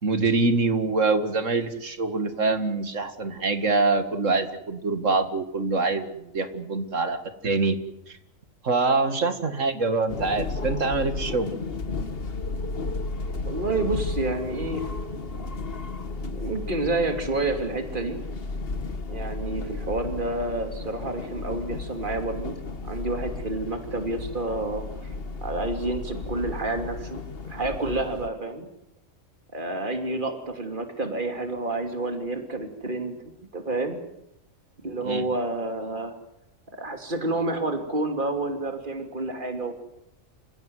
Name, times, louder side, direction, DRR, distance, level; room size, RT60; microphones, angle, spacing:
voice 1, 0.0-7.8 8.1-8.2 8.6-11.5 35.0-35.2, right 3 dB, 70° right, 9 dB, 2.4 m, -25 dB
sound 1, 10.1-28.3, left 3 dB, 50° left, 1.5 m, -34 dB
voice 2, 13.4-14.9 16.2-18.2 19.1-22.5 22.8-25.1 25.4-27.2 27.4-28.7 29.5-33.2 33.5-34.0 34.8-36.1 36.8-39.7, right 2 dB, 40° right, 6 dB, 3.1 m, -29 dB
29.0 x 16.5 x 9.6 m, 0.82 s
omnidirectional pair, 1.4 m